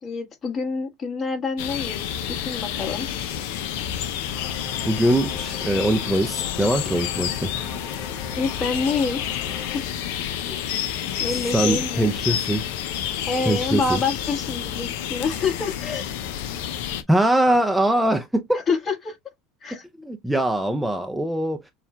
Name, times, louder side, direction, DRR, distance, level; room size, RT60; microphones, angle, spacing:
voice 1, 0.0-3.1 8.4-9.2 9.7-9.9 10.4-10.6 11.2-12.1 13.3-16.1 18.7-19.1 19.6-19.8, left 4 dB, 35° left, 1.6 m, -27 dB
sound 1, 1.6-17.0, left 10 dB, 70° left, 0.5 m, -29 dB
sound 2, 4.3-9.8, left 5 dB, 50° left, 2.4 m, -41 dB
voice 2, 4.8-7.6 11.5-12.6 13.5-14.0 17.1-18.6 19.9-21.7, right 1 dB, 5° right, 0.5 m, -22 dB
6.8 x 2.4 x 2.2 m
hypercardioid pair, 80°, 0 cm